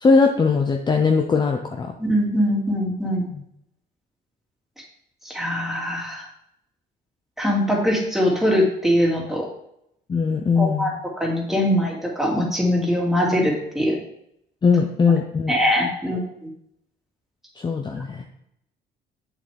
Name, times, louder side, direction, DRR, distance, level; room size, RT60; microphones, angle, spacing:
voice 1, 0.0-1.9 10.1-11.0 14.6-15.5 17.6-18.2, left 4 dB, 25° left, 3 dB, 0.7 m, -20 dB
voice 2, 2.0-3.3 5.2-6.2 7.4-9.5 10.6-10.9 11.2-14.0 15.5-16.5, equal, ahead, -2 dB, 2.4 m, -22 dB
7.6 x 7.2 x 3.5 m, 0.77 s
cardioid pair, 110°, 17 cm